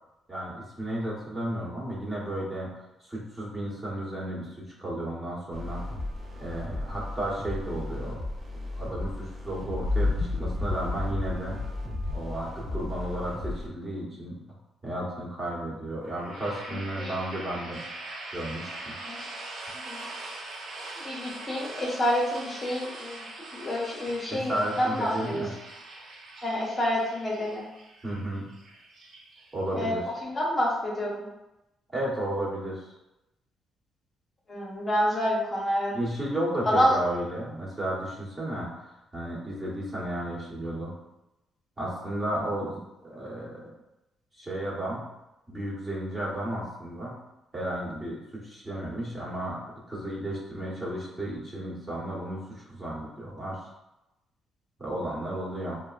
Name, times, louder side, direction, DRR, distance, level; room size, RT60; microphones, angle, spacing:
voice 1, 0.3-2.7 3.1-5.8 6.4-8.2 8.8-11.6 12.1-14.4 14.8-17.8 18.3-18.9 24.3-25.5 28.0-28.5 29.5-30.0 31.9-32.8 35.9-40.9 41.8-43.7 44.3-45.0 45.5-47.1 47.5-49.6 49.9-53.6 54.8-55.8, right 1 dB, 20° right, -6 dB, 1.3 m, -33 dB
sound 1, 5.5-13.7, left 1 dB, 35° right, 0.8 m, -36 dB
sound 2, 9.8-13.4, left 3 dB, 45° left, 0.4 m, -31 dB
sound 3, 16.0-29.9, right 2 dB, 65° right, 0.7 m, -42 dB
voice 2, 21.0-23.2 23.5-25.4 26.4-27.6 29.7-29.9 30.2-31.3 34.5-35.9 36.7-37.0, equal, 30° left, -4 dB, 0.9 m, -28 dB
4.5 x 2.1 x 2.4 m, 0.93 s
cardioid pair, 90°, 0 cm